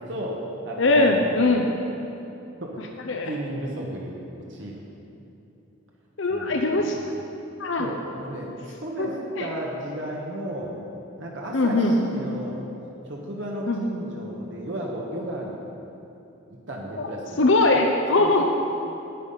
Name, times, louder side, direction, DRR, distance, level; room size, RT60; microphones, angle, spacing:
voice 1, 0.0-1.3 2.6-2.8 3.2-4.8 6.3-7.1 7.8-10.7 11.2-12.6 13.0-15.6 16.5-17.4 18.2-18.4, right 1 dB, 65° right, -3 dB, 1.3 m, -34 dB
voice 2, 0.8-1.7 3.1-3.3 6.2-7.0 7.6-7.9 9.0-9.1 9.4-9.5 11.5-11.9 13.7-13.8 17.4-18.4, left 2 dB, 70° left, 2 dB, 0.7 m, -20 dB
9.4 x 9.2 x 5.7 m, 2.8 s
head